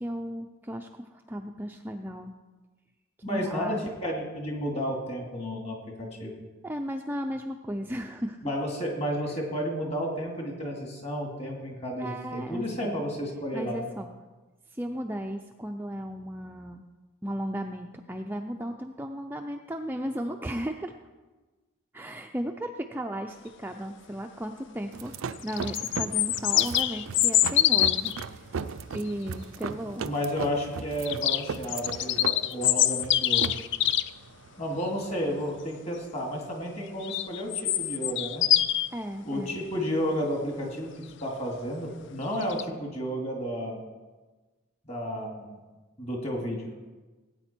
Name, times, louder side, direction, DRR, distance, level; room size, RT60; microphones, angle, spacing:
voice 1, 0.0-2.3 3.2-3.8 6.6-8.4 12.0-13.0 13.5-14.1 14.7-16.9 17.2-21.0 21.9-28.1 28.9-30.1 38.9-39.6, equal, 10° right, 4 dB, 0.4 m, -35 dB
voice 2, 3.2-3.8 4.0-6.3 8.4-13.8 30.0-33.5 34.6-38.4 39.2-40.9 41.2-43.8 44.8-45.6 46.0-46.7, equal, 30° left, 0 dB, 2.4 m, -32 dB
sound 1, 24.9-35.6, right 5 dB, 70° right, 0.4 m, -38 dB
sound 2, 25.3-28.2 31.1-34.1 37.0-38.9 42.4-42.6, left 12 dB, 55° left, 0.4 m, -25 dB
17.0 x 8.9 x 4.4 m, 1.2 s
head